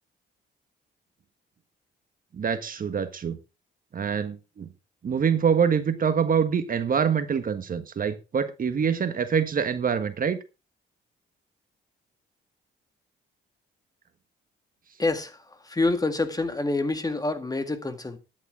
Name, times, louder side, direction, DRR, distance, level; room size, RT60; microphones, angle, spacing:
voice 1, 2.3-3.4 3.9-4.7 5.0-10.4, right 7 dB, 45° right, 1.5 m, -25 dB
voice 2, 15.0-18.2, left 2 dB, 20° left, 2.0 m, -27 dB
13.0 x 10.0 x 3.8 m
cardioid pair, 90°, 20 cm